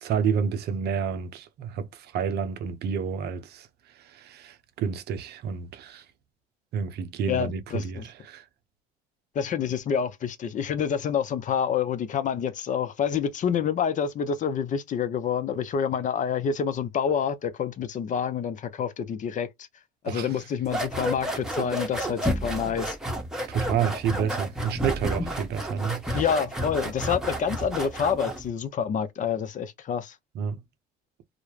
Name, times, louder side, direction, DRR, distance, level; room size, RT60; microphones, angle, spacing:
voice 1, 0.0-3.7 4.1-6.0 6.7-8.4 20.1-20.3 23.5-26.2 30.3-30.6, right 7 dB, 60° right, 0.6 m, -29 dB
voice 2, 7.3-8.1 9.3-19.5 20.0-23.0 26.1-30.1, left 7 dB, 45° left, 0.5 m, -27 dB
sound 1, 20.6-28.5, equal, 5° right, 0.9 m, -31 dB
2.2 x 2.1 x 3.1 m
supercardioid pair, 75°, 19 cm